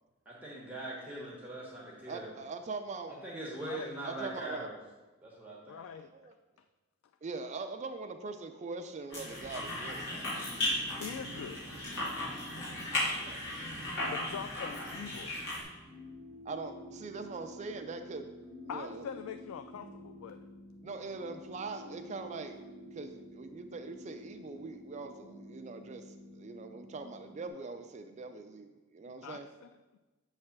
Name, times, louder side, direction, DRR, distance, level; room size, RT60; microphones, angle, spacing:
voice 1, 0.3-2.3 3.2-4.8 5.2-5.8, right 1 dB, 10° right, -4 dB, 1.1 m, -41 dB
voice 2, 2.1-3.2 4.0-4.7 6.1-6.3 7.2-10.3 13.3-13.6 16.5-18.3 18.6-19.1 20.8-22.6 22.9-29.5, right 3 dB, 35° right, 7 dB, 0.4 m, -42 dB
voice 3, 5.7-6.1 11.0-11.6 14.1-15.3 18.7-20.4 29.2-29.4, left 7 dB, 90° left, 8 dB, 0.3 m, -43 dB
sound 1, 9.1-15.6, left 1 dB, 60° left, 1.9 m, -36 dB
sound 2, 10.1-27.5, left 1 dB, 15° left, 1.2 m, -51 dB
7.4 x 3.2 x 5.9 m, 1.2 s
head